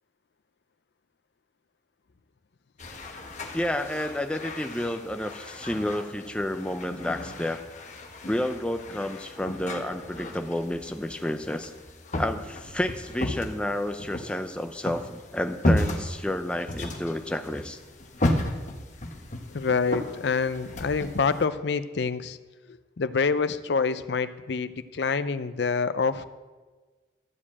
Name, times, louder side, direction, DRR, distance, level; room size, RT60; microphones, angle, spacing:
sound 1, 2.8-21.4, left 1 dB, 40° left, 1.0 m, -34 dB
voice 1, 3.5-7.6 8.3-11.7 12.2-17.8, left 1 dB, 5° left, 7 dB, 0.4 m, -30 dB
voice 2, 19.5-22.4 23.0-26.3, left 5 dB, 60° left, 13 dB, 0.5 m, -26 dB
12.5 x 5.0 x 8.5 m, 1.3 s
head